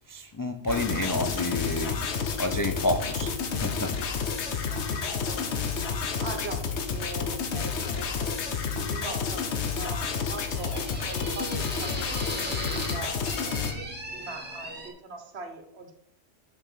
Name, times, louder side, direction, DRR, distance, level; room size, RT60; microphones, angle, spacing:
voice 1, 0.1-4.0, left 1 dB, 35° left, 0.3 m, -30 dB
sound 1, 0.7-13.7, left 6 dB, 75° left, 1.2 m, -30 dB
voice 2, 4.7-8.4 8.7-12.1 12.5-15.9, right 3 dB, 65° right, 1.4 m, -42 dB
sound 2, 8.7-14.9, right 1 dB, 10° right, 1.8 m, -39 dB
6.6 x 5.9 x 4.9 m
omnidirectional pair, 1.2 m